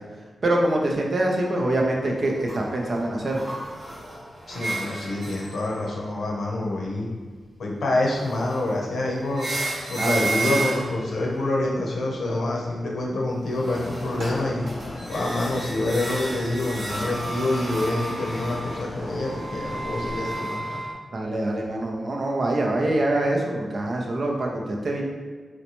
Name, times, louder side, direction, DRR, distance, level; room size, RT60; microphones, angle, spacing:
voice 1, 0.4-3.4 10.0-10.6 21.1-25.0, right 1 dB, 45° right, -1 dB, 0.5 m, -25 dB
sound 1, 2.2-6.5 7.9-11.6 13.2-20.9, right 2 dB, 65° right, 1.1 m, -33 dB
voice 2, 4.5-7.1 7.6-9.5 9.9-14.7 15.1-20.8, left 2 dB, 70° left, -2 dB, 0.7 m, -27 dB
sound 2, 13.7-20.3, left 2 dB, 40° left, 0.3 m, -38 dB
3.9 x 2.1 x 2.9 m, 1.5 s
wide cardioid pair, 150°, 0 cm